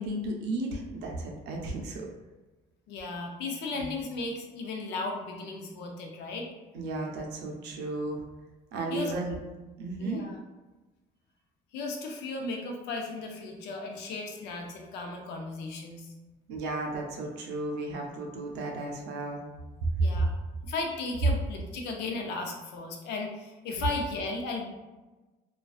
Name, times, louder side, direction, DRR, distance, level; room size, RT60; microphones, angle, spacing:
voice 1, 0.0-2.1 3.8-3.9 6.7-8.2 8.7-9.4 9.8-10.2 16.5-19.4 20.1-20.3, right 2 dB, 85° right, 1 dB, 0.5 m, -34 dB
voice 2, 2.9-6.5 8.9-9.1 10.0-10.4 11.7-16.1 20.0-20.3 20.6-24.7, left 3 dB, 85° left, 2 dB, 0.5 m, -35 dB
2.3 x 2.2 x 2.3 m, 1.2 s
cardioid pair, 110°, 17 cm